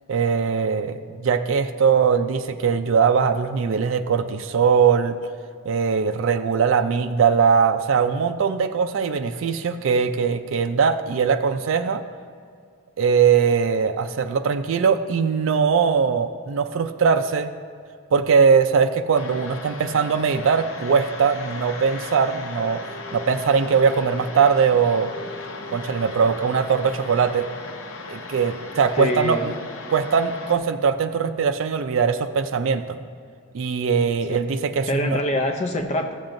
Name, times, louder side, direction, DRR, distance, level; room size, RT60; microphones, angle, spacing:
voice 1, 0.1-5.2 5.7-12.0 13.0-17.5 18.1-25.1 25.7-27.5 28.1-29.5 29.9-33.0 33.5-35.2, right 6 dB, 60° right, 7 dB, 0.4 m, -21 dB
sound 1, 19.1-30.5, left 3 dB, 65° left, 0.8 m, -37 dB
voice 2, 28.9-29.5 34.3-34.4 34.9-36.2, left 1 dB, 30° left, 4 dB, 0.5 m, -24 dB
14.0 x 7.3 x 2.6 m, 2.2 s
head